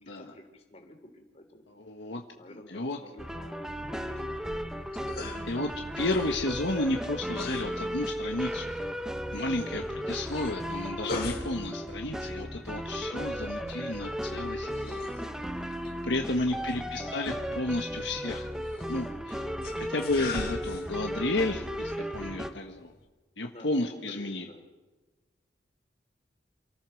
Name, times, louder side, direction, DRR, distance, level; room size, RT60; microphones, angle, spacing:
voice 1, 0.0-1.6 2.3-4.7 12.9-13.4 15.9-17.2 23.5-24.7, left 1 dB, 35° left, 4 dB, 3.5 m, -51 dB
voice 2, 1.8-2.2 2.7-3.0 5.2-8.7 9.3-15.1 15.6-15.7 16.0-18.5 18.9-19.5 19.8-22.9 23.4-24.5, left 2 dB, 70° left, 3 dB, 1.4 m, -32 dB
sound 1, 3.2-22.5, equal, 5° right, 1.1 m, -35 dB
sound 2, 4.3-23.0, left 2 dB, 55° left, 3.1 m, -43 dB
28.5 x 14.5 x 6.4 m, 1.2 s
head